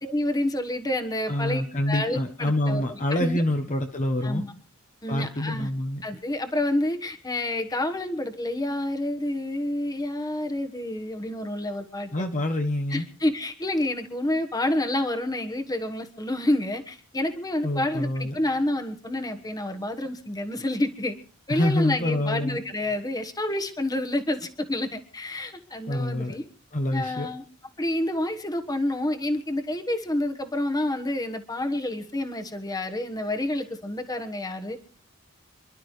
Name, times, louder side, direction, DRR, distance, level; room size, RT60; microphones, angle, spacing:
voice 1, 0.0-3.4 4.2-4.5 5.0-5.7 6.0-12.1 12.9-21.2 21.5-26.4 26.9-27.4 27.8-34.8, left 1 dB, 20° left, 6 dB, 1.3 m, -29 dB
voice 2, 1.3-4.5 5.1-6.0 12.1-13.1 17.6-18.3 21.5-22.6 25.9-26.4 26.7-27.3, left 1 dB, 35° left, 5 dB, 1.1 m, -26 dB
28.0 x 11.5 x 3.2 m, 0.41 s
head